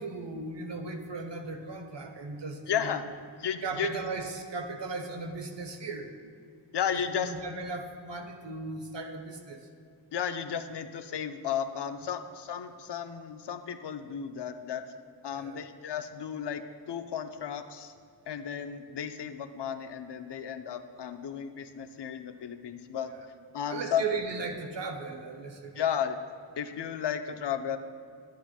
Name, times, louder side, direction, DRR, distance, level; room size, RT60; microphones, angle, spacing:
voice 1, 0.0-2.9 3.6-6.1 6.9-9.6 15.3-15.6 23.1-23.2 23.7-25.8, right 4 dB, 85° right, 5 dB, 0.9 m, -37 dB
voice 2, 2.7-3.0 3.4-4.0 6.7-7.3 10.1-14.8 15.2-17.9 18.3-23.1 23.5-24.0 25.8-26.2 26.6-27.8, left 8 dB, 70° left, 9 dB, 0.6 m, -33 dB
11.5 x 9.3 x 2.4 m, 2.3 s
wide cardioid pair, 75°, 42 cm